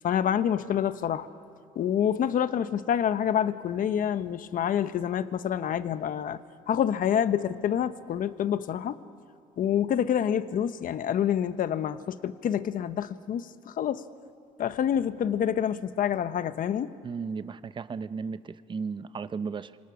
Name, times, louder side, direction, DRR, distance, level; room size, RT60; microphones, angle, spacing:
voice 1, 0.0-1.3 1.7-6.4 6.7-9.0 9.6-14.0 14.6-16.9, left 9 dB, 55° left, 12 dB, 1.0 m, -27 dB
voice 2, 17.0-19.8, right 5 dB, 30° right, 14 dB, 0.7 m, -35 dB
29.5 x 27.0 x 6.3 m, 2.5 s
cardioid pair, 110°, 17 cm